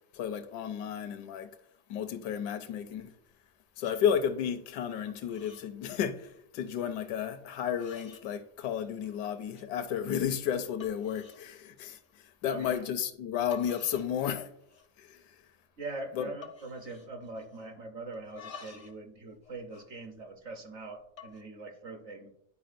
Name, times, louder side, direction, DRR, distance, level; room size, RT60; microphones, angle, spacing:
voice 1, 0.0-1.5 1.9-3.1 3.8-6.3 6.5-12.0 12.4-14.5 15.1-15.2 16.2-16.3, left 8 dB, 80° left, 1.2 m, -32 dB
sound 1, 3.3-3.5 3.8-4.0 4.4-4.8 5.1-5.7 6.0-6.4 7.1-7.2 7.7-8.3 8.7-9.2 9.5-9.7 10.2-10.3 10.8-11.4 11.8-12.1 13.2-13.3 13.5-14.1 14.4-15.0 15.3-15.4 15.7-16.0 16.4-17.8 18.1-19.0 19.3-20.6 21.0-21.4, left 7 dB, 60° left, 0.3 m, -52 dB
voice 2, 12.5-12.9 15.8-22.3, right 2 dB, 55° right, 0.9 m, -42 dB
11.0 x 4.7 x 2.5 m
omnidirectional pair, 1.8 m